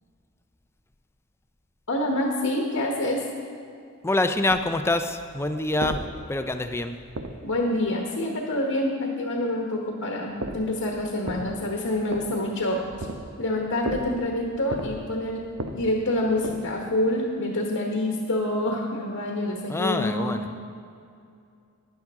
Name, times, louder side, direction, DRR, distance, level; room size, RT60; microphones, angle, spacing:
voice 1, 1.9-3.2 7.4-13.1 13.4-15.4 15.7-20.6, left 1 dB, 70° left, 0 dB, 1.2 m, -27 dB
voice 2, 4.0-6.0 6.3-6.9 19.7-20.5, left 2 dB, 10° left, 8 dB, 0.4 m, -25 dB
sound 1, 4.5-7.9 10.3-17.0, right 2 dB, 90° right, 0.8 m, -37 dB
12.0 x 10.5 x 3.6 m, 2.4 s
head